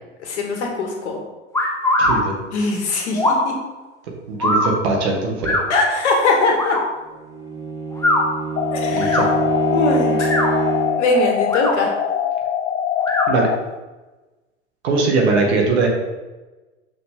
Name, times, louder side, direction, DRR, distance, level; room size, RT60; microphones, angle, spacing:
voice 1, 0.2-1.2 2.5-3.6 5.7-6.8 8.7-9.2 9.7-10.3 11.0-11.9, left 3 dB, 65° left, 1 dB, 2.0 m, -21 dB
sound 1, 1.5-2.2 3.1-3.5 4.4-4.7 5.4-5.6 6.5-6.8 7.9-8.2 9.0-9.3 10.1-10.5 11.4-11.7 13.0-13.3, left 1 dB, 10° left, 1.6 m, -20 dB
voice 2, 2.0-2.3 4.3-5.6 8.9-9.3 13.3-13.5 14.8-15.9, right 3 dB, 60° right, 0 dB, 2.1 m, -20 dB
Bowed string instrument, 7.2-11.1, right 3 dB, 10° right, 1.9 m, -24 dB
sound 2, 8.6-13.6, left 9 dB, 25° left, 0.6 m, -23 dB
6.2 x 6.1 x 3.8 m, 1.2 s
hypercardioid pair, 90°, 36 cm